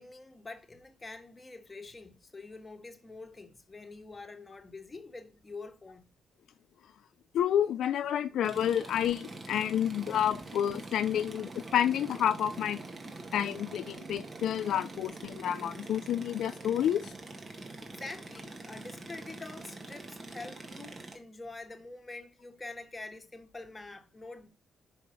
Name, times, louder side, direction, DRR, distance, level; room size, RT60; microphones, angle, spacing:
voice 1, 0.0-6.1 17.5-24.5, left 3 dB, 25° left, 1.5 m, -46 dB
voice 2, 7.3-12.8 13.3-17.1, left 10 dB, 75° left, 0.4 m, -29 dB
sound 1, 8.4-21.2, right 2 dB, 35° right, 1.6 m, -44 dB
5.4 x 5.1 x 5.2 m
cardioid pair, 85°, 0 cm